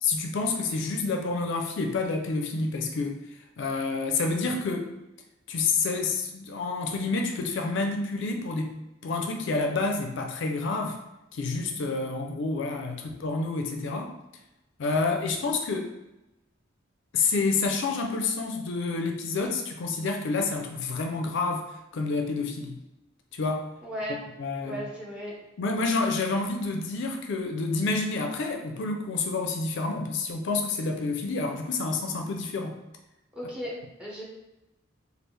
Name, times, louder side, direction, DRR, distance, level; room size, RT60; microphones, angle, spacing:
voice 1, 0.0-3.2 3.6-4.9 5.5-11.0 11.3-14.1 14.8-15.9 17.1-22.8 23.3-23.7 24.4-24.8 25.6-32.8, left 3 dB, 65° left, 3 dB, 0.4 m, -28 dB
voice 2, 23.8-24.2 24.6-25.5 33.3-34.2, equal, 5° right, -5 dB, 0.8 m, -36 dB
3.3 x 2.4 x 3.1 m, 0.93 s
head